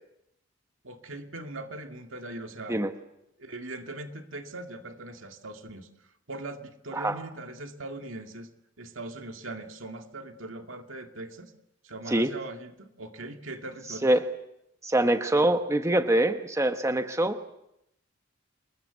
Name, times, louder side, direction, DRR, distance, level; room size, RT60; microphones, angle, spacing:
voice 1, 0.8-2.8 3.4-5.9 6.3-8.5 8.8-11.5 11.8-14.1 15.3-15.5, right 2 dB, 75° right, 5 dB, 2.3 m, -40 dB
voice 2, 14.8-17.4, right 1 dB, 15° right, 7 dB, 1.2 m, -24 dB
26.0 x 21.0 x 8.2 m, 0.81 s
head